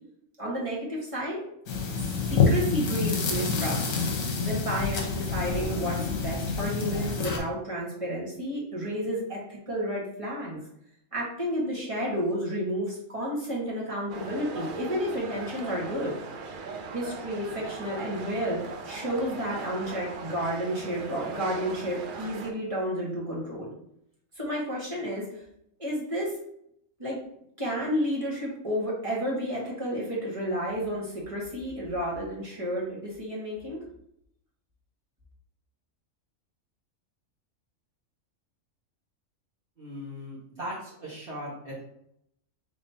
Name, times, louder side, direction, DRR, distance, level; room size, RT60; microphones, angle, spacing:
voice 1, 0.4-1.4 2.0-3.8 4.1-10.6 11.1-16.1 16.9-23.7 24.4-25.4 25.8-26.3 27.0-27.2 27.6-33.8, equal, 25° right, -5 dB, 1.4 m, -31 dB
sound 1, 1.7-7.4, left 4 dB, 70° left, 1.2 m, -27 dB
sound 2, 14.1-22.5, right 4 dB, 65° right, 0.5 m, -39 dB
voice 2, 39.8-41.8, equal, 40° right, -10 dB, 1.5 m, -38 dB
5.1 x 3.5 x 2.7 m, 0.75 s
omnidirectional pair, 1.4 m